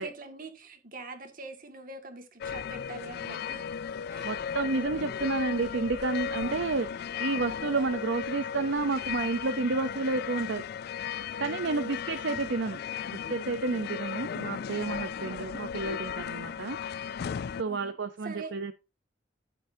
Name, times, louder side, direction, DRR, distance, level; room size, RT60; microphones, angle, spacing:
voice 1, 0.0-3.6 4.1-4.3 7.7-7.9 11.6-11.9 15.2-15.4 17.6-17.9 18.2-18.5, right 3 dB, 50° right, 2.0 m, -44 dB
sound 1, 2.4-17.6, left 7 dB, 55° left, 0.3 m, -36 dB
voice 2, 4.2-10.6 11.4-12.8 13.1-16.8 17.6-18.7, right 3 dB, 65° right, 0.7 m, -30 dB
12.5 x 7.0 x 2.7 m
head